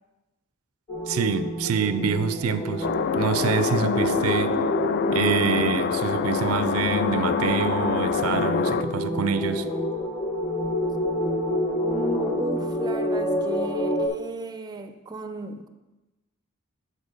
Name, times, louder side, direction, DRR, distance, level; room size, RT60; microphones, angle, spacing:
sound 1, 0.9-14.1, equal, 25° left, 1.3 m, -28 dB
voice 1, 1.1-2.9 3.2-4.6 5.1-9.7, right 6 dB, 75° right, 0.4 m, -26 dB
sound 2, 2.8-8.8, left 6 dB, 50° left, 0.3 m, -25 dB
voice 2, 11.8-15.7, right 1 dB, 20° right, 0.4 m, -34 dB
7.4 x 4.3 x 6.3 m
head